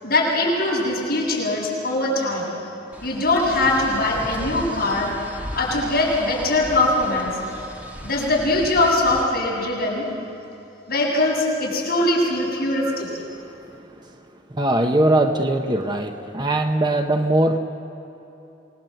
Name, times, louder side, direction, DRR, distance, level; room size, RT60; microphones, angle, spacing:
voice 1, 0.0-2.5 3.0-7.4 8.0-10.1 10.9-13.1, left 2 dB, 55° left, -4 dB, 7.8 m, -22 dB
sound 1, 2.9-9.2, equal, 10° right, 1.7 m, -36 dB
voice 2, 12.8-14.1 14.5-17.6, right 1 dB, 25° right, 5 dB, 1.0 m, -22 dB
27.5 x 20.5 x 7.9 m, 2.9 s
head